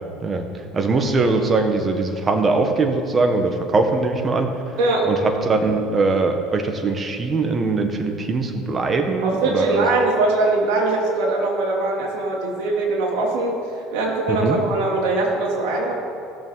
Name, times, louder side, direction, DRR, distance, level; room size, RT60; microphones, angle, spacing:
voice 1, 0.2-4.6 5.0-9.9 14.3-14.6, right 3 dB, 30° right, 5 dB, 1.5 m, -21 dB
voice 2, 4.8-5.1 9.2-15.9, right 2 dB, 70° right, -2 dB, 3.2 m, -22 dB
17.5 x 7.1 x 4.1 m, 2.4 s
supercardioid pair, 90°, 0 cm